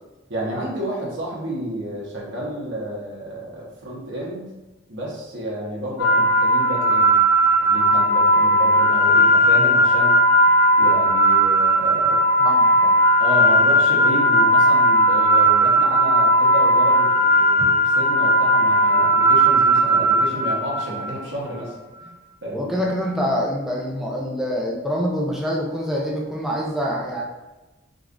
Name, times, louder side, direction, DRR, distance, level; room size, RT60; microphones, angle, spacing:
voice 1, 0.3-4.5 4.9-7.1 7.4-10.1 10.8-12.2 13.2-21.7 22.4-22.7, right 1 dB, 70° right, -4 dB, 1.0 m, -30 dB
sound 1, 6.0-21.1, equal, 80° left, 0.5 m, -17 dB
voice 2, 12.4-13.0 22.5-27.3, equal, ahead, -2 dB, 0.4 m, -25 dB
5.0 x 2.3 x 2.5 m, 1.1 s
head